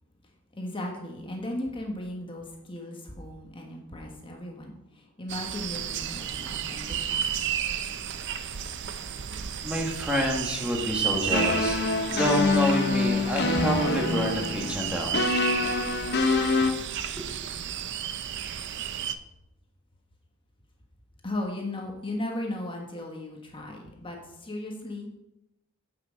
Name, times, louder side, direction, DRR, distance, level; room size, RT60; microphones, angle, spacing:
voice 1, 0.5-7.3 21.2-25.1, left 1 dB, 25° left, 1 dB, 1.3 m, -36 dB
sound 1, 5.3-19.1, right 9 dB, 60° right, 0.5 m, -33 dB
voice 2, 9.6-11.8 12.1-15.2, equal, 5° right, 0 dB, 1.4 m, -28 dB
sound 2, 11.3-16.7, left 3 dB, 55° left, 0.9 m, -25 dB
9.4 x 6.0 x 5.2 m, 0.89 s
head